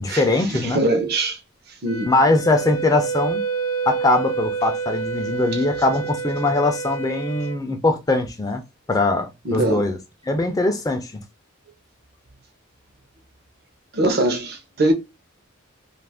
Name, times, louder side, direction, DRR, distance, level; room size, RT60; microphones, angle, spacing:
voice 1, 0.0-0.8 2.1-3.4 3.9-8.6 8.9-10.0 10.2-11.2, left 2 dB, 20° left, 0.4 m, -21 dB
voice 2, 0.6-1.4 1.8-2.1 9.5-9.8 13.9-14.9, right 2 dB, 50° right, 0.7 m, -21 dB
Wind instrument woodwind instrument, 1.9-7.6, right 5 dB, 75° left, 0.6 m, -28 dB
2.5 x 2.4 x 3.4 m
head